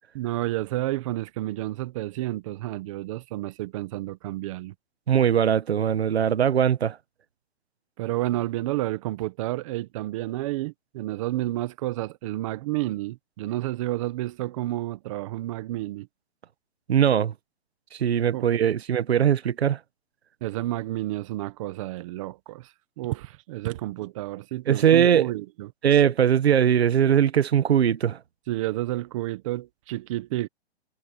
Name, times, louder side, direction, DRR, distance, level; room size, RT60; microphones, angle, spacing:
voice 1, 0.1-4.7 8.0-16.1 18.3-18.5 20.4-25.7 28.5-30.5, right 16 dB, 30° right, 1.4 m, -30 dB
voice 2, 5.1-7.0 16.9-17.3 18.0-19.8 24.7-25.3 25.8-28.2, right 9 dB, 70° right, 1.6 m, -20 dB
hypercardioid pair, 165°, 32 cm